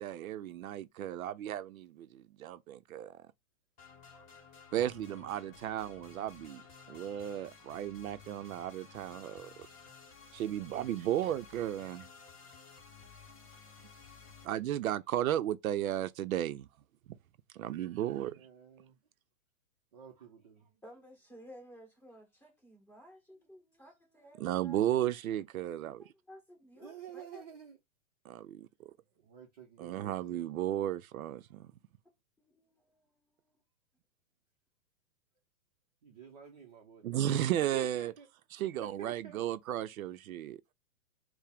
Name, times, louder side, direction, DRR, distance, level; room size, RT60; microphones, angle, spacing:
voice 1, 0.0-3.2 4.7-6.6 6.9-9.7 10.3-12.1 14.4-16.7 17.5-18.4 24.4-26.0 28.3-28.9 29.8-31.7 37.0-38.1 38.5-40.6, right 12 dB, 85° right, 0.5 m, -34 dB
sound 1, 3.8-14.5, left 5 dB, 25° left, 0.9 m, -54 dB
voice 2, 4.9-5.6 18.4-19.0 19.9-20.7 26.8-27.8 29.2-30.4 36.0-37.0 37.7-38.3 38.8-39.4, right 7 dB, 30° right, 0.6 m, -51 dB
voice 3, 20.8-25.0 26.0-27.4 32.4-33.5, equal, 5° left, 1.6 m, -55 dB
4.6 x 2.1 x 3.4 m
hypercardioid pair, 165°, 41 cm